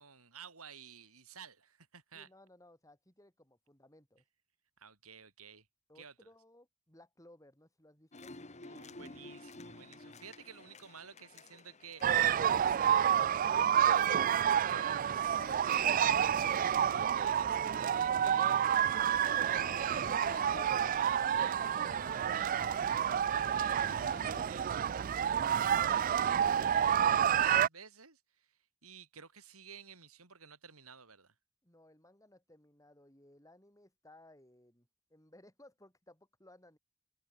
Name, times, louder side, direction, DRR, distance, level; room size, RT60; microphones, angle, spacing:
voice 1, 0.0-2.3 4.8-5.7 6.0-6.1 8.6-13.1 13.7-18.6 19.0-22.6 22.8-31.3, right 6 dB, 90° right, 7.2 m, -53 dB
voice 2, 2.1-4.2 5.9-8.4 31.6-36.8, left 1 dB, 15° left, 7.5 m, -61 dB
sound 1, 8.1-24.4, left 3 dB, 30° left, 1.9 m, -53 dB
sound 2, 12.0-27.7, right 9 dB, 40° right, 0.3 m, -29 dB
open air
head